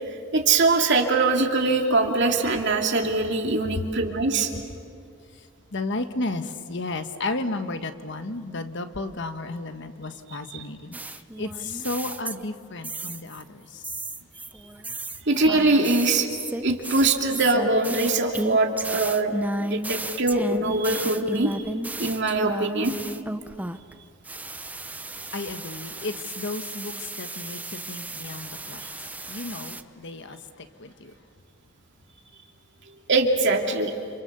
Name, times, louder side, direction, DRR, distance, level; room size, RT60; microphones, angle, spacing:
voice 1, 0.3-4.5 10.5-10.6 15.3-16.3 16.6-19.3 19.6-21.6 22.0-22.9 33.1-33.9, right 3 dB, 60° right, 2 dB, 2.7 m, -22 dB
voice 2, 5.7-13.8 25.3-31.1, left 2 dB, 60° left, 8 dB, 1.4 m, -33 dB
sound 1, 10.9-13.4 13.8-23.9 24.2-29.8, right 1 dB, 10° right, 0.6 m, -34 dB
30.0 x 27.5 x 6.9 m, 2.2 s
head